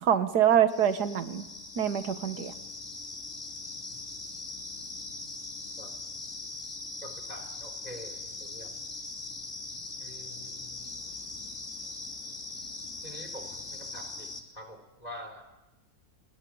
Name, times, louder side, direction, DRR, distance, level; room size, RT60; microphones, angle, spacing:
voice 1, 0.0-1.4 1.8-2.5, right 9 dB, 90° right, 10 dB, 1.8 m, -25 dB
sound 1, 0.7-14.4, left 3 dB, 45° left, 3.2 m, -41 dB
voice 2, 7.0-8.7 10.0-10.9 13.0-14.3 14.6-15.4, equal, 25° left, 3 dB, 3.9 m, -46 dB
28.0 x 20.5 x 8.7 m, 1.0 s
omnidirectional pair, 1.7 m